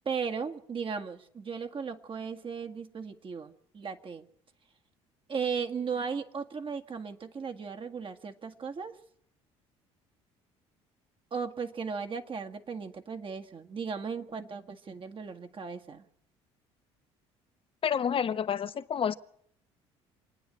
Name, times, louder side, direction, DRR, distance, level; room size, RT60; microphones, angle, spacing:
voice 1, 0.1-4.2 5.3-9.0 11.3-16.1, right 6 dB, 40° right, 1.8 m, -36 dB
voice 2, 17.8-19.2, left 8 dB, 40° left, 1.1 m, -29 dB
27.0 x 9.6 x 10.0 m
hypercardioid pair, 65°, 14 cm